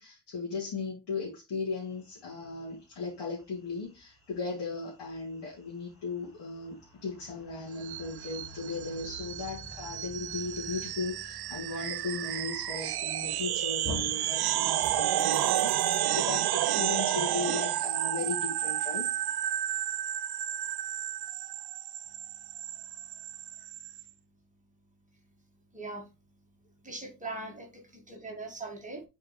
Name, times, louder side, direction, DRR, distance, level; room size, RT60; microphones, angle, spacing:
voice 1, 0.0-6.8 7.0-19.1 21.3-21.4, left 4 dB, 70° left, 2.5 m, -37 dB
sound 1, 1.7-16.3, equal, 30° left, 2.8 m, -54 dB
sound 2, 7.8-24.0, right 13 dB, 65° right, 0.5 m, -31 dB
sound 3, 13.1-13.5 13.8-14.2 14.8-16.2, left 1 dB, 10° left, 2.5 m, -41 dB
voice 2, 25.7-26.1 26.8-29.0, right 2 dB, 15° right, 1.9 m, -40 dB
6.8 x 4.5 x 3.2 m
wide cardioid pair, 150°, 42 cm